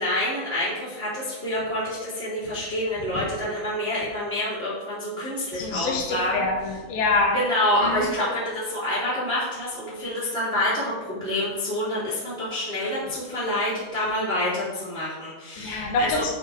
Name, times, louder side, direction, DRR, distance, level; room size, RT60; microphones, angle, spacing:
voice 1, 0.0-6.4 7.3-16.2, left 1 dB, 15° right, -8 dB, 2.1 m, -27 dB
voice 2, 5.5-7.4 7.8-8.1 15.6-16.3, left 3 dB, 75° left, 0 dB, 3.1 m, -25 dB
11.0 x 4.5 x 4.8 m, 1.2 s
omnidirectional pair, 5.4 m